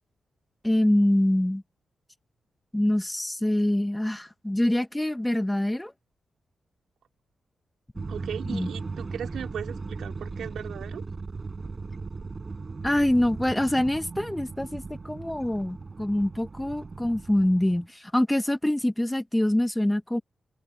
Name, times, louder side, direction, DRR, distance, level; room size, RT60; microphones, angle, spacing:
voice 1, 0.6-1.6 2.7-5.9 8.5-8.7 12.8-20.2, left 1 dB, 10° left, 1.3 m, -25 dB
sound 1, 7.9-17.9, right 4 dB, 45° right, 7.4 m, -37 dB
voice 2, 8.1-11.0, right 8 dB, 80° right, 2.9 m, -37 dB
open air
supercardioid pair, 50°, 0 cm